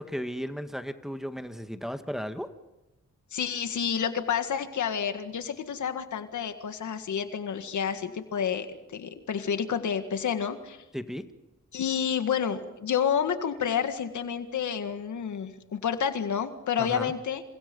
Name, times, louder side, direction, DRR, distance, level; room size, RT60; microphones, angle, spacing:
voice 1, 0.0-2.5 10.9-11.2 16.8-17.1, equal, ahead, 8 dB, 1.7 m, -35 dB
voice 2, 3.3-10.8 11.7-17.4, left 7 dB, 85° left, 8 dB, 1.9 m, -29 dB
29.0 x 28.0 x 5.5 m, 0.98 s
cardioid pair, 80°, 29 cm